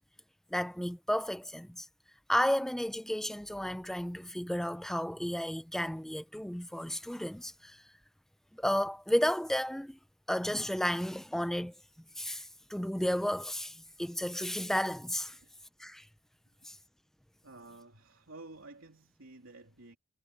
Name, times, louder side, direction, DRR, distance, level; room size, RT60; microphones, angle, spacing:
voice 1, 0.5-1.9 2.3-7.9 8.5-10.0 10.3-11.7 12.2-15.4 15.8-16.1 16.6-16.8, equal, ahead, 0.4 m, -33 dB
voice 2, 17.4-20.0, right 2 dB, 90° right, 3.1 m, -52 dB
head